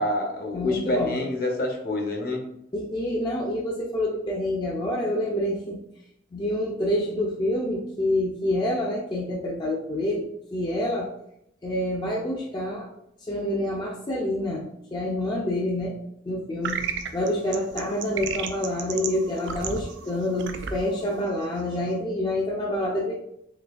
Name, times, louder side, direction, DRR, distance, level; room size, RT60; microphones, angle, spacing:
voice 1, 0.0-2.4, left 1 dB, 50° left, 1 dB, 0.7 m, -27 dB
voice 2, 0.5-1.2 2.7-5.8 6.3-10.3 10.5-11.1 11.6-12.9 13.3-15.9 16.3-16.8 17.1-23.2, left 1 dB, 25° left, -3 dB, 0.4 m, -27 dB
sound 1, 16.6-22.0, right 6 dB, 80° right, 0.4 m, -34 dB
3.8 x 3.2 x 2.4 m, 0.78 s
head